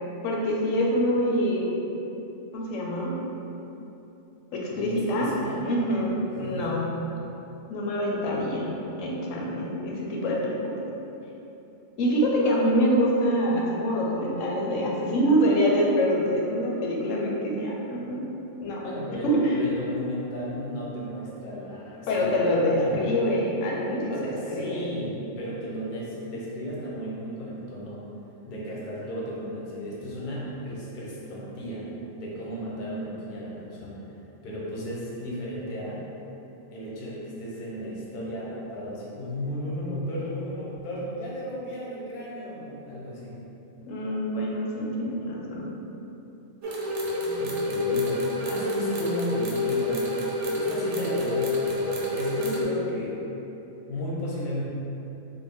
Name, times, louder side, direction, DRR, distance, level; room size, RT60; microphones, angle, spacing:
voice 1, 0.2-1.8 2.5-3.1 4.5-5.3 5.6-6.9 7.7-10.8 12.0-18.3 18.6-18.8 19.2-19.6 22.1-24.9 43.9-45.7, equal, 85° left, -3 dB, 0.9 m, -25 dB
voice 2, 4.7-5.6 5.9-6.7 18.8-23.4 24.0-28.1 28.5-34.0 34.4-36.0 36.7-43.4 47.0-50.2 50.5-53.2 53.9-54.6, equal, 50° left, -5 dB, 0.7 m, -34 dB
sound 1, 46.6-52.6, left 2 dB, 70° right, 0.9 m, -28 dB
3.4 x 2.1 x 3.5 m, 3.0 s
omnidirectional pair, 1.3 m